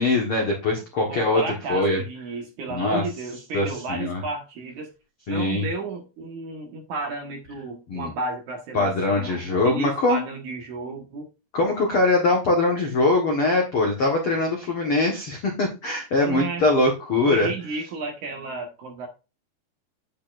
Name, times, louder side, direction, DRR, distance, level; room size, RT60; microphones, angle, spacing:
voice 1, 0.0-1.4 1.7-2.0 2.7-3.0 3.5-4.2 5.3-5.6 7.9-8.1 8.7-10.2 11.5-17.5, left 2 dB, 75° left, 1 dB, 1.2 m, -22 dB
voice 2, 1.1-4.9 5.3-11.3 16.2-16.6 17.3-19.1, right 3 dB, 60° right, 2 dB, 2.4 m, -33 dB
8.7 x 8.5 x 2.6 m, 0.29 s
omnidirectional pair, 5.0 m